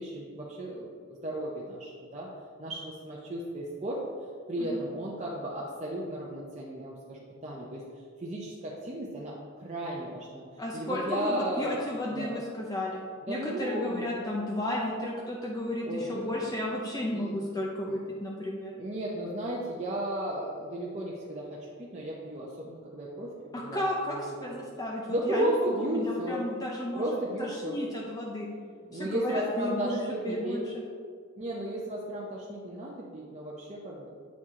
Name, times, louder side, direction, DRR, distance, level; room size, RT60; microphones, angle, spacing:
voice 1, 0.0-2.3 2.6-4.0 4.5-10.4 10.7-12.4 13.3-14.5 15.8-16.4 17.1-17.5 17.9-18.0 18.7-24.6 25.1-26.4 26.9-27.8 28.7-30.6 31.4-34.1, right 1 dB, 30° right, -5 dB, 0.6 m, -34 dB
voice 2, 10.6-13.0 13.3-18.7 23.5-27.1 27.4-28.5 28.9-30.0 30.2-30.6, left 1 dB, 15° left, -3 dB, 0.5 m, -33 dB
8.3 x 4.6 x 3.6 m, 2.1 s
head